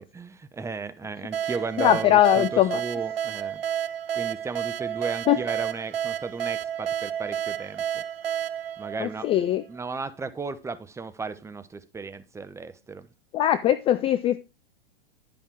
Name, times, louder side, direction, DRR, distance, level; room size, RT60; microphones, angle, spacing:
voice 1, 0.2-3.6 4.1-8.0 8.8-13.1, right 4 dB, 10° right, 0.8 m, -35 dB
sound 1, 1.3-9.8, right 10 dB, 85° right, 0.6 m, -31 dB
voice 2, 1.8-2.8 5.3-5.4 9.0-9.6 13.3-14.4, left 12 dB, 20° left, 0.4 m, -21 dB
10.5 x 5.4 x 4.6 m
hypercardioid pair, 110°, 29 cm